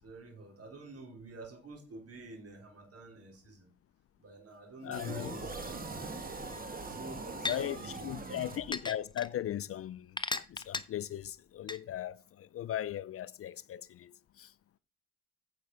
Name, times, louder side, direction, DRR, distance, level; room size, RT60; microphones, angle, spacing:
voice 1, 0.0-3.7 4.2-6.2 6.8-8.3, right 3 dB, 50° right, 4.2 m, -50 dB
voice 2, 4.8-5.4 7.4-14.5, left 11 dB, 50° left, 0.5 m, -38 dB
sound 1, 4.9-9.1, right 3 dB, 30° right, 2.0 m, -42 dB
sound 2, 6.5-6.6 7.4-7.6 8.7-9.3 10.2-10.8 11.7-11.8, left 3 dB, 15° left, 0.9 m, -34 dB
8.6 x 6.1 x 5.6 m
supercardioid pair, 75°, 31 cm